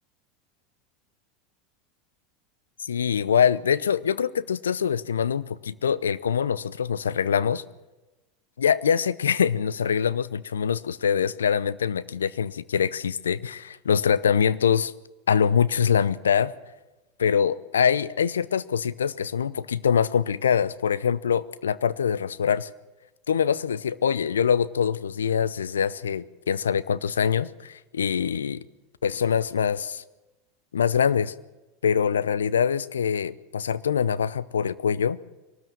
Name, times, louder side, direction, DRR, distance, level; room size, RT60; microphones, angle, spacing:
voice 1, 2.8-7.6 8.6-14.9 15.3-16.5 17.2-22.7 23.3-28.6 29.0-30.0 30.7-31.3 31.8-35.2, left 7 dB, 80° left, 17 dB, 0.7 m, -24 dB
23.0 x 19.0 x 7.1 m, 1.1 s
figure-of-eight pair, 80°, 0 cm